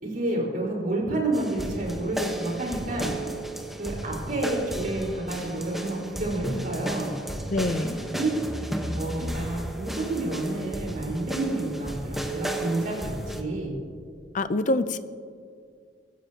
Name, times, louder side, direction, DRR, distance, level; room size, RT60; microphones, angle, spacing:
voice 1, 0.0-3.1 3.8-7.1 8.1-8.3 8.9-13.7, right 2 dB, 55° right, -2 dB, 4.7 m, -29 dB
sound 1, 1.3-13.4, right 1 dB, ahead, 1.2 m, -34 dB
voice 2, 7.5-8.0 14.3-15.0, left 2 dB, 45° left, 12 dB, 0.6 m, -25 dB
23.5 x 15.5 x 2.9 m, 2.2 s
head